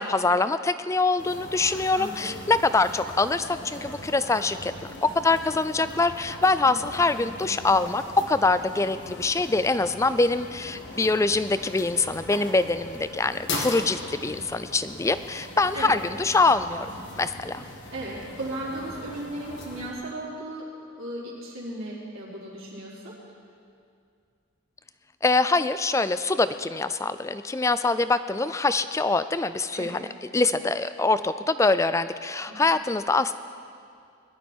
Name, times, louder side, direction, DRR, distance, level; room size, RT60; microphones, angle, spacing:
voice 1, 0.0-16.9 17.2-17.6 25.2-30.1 30.3-33.3, left 3 dB, 15° left, 13 dB, 0.3 m, -24 dB
sound 1, 1.2-19.9, left 2 dB, 55° left, 1.8 m, -39 dB
voice 2, 1.9-2.4 6.7-6.8 15.7-16.0 17.9-20.7 21.0-23.1 29.7-30.0 32.5-32.6, right 1 dB, 75° right, -6 dB, 4.0 m, -36 dB
20.5 x 12.5 x 4.5 m, 2.4 s
head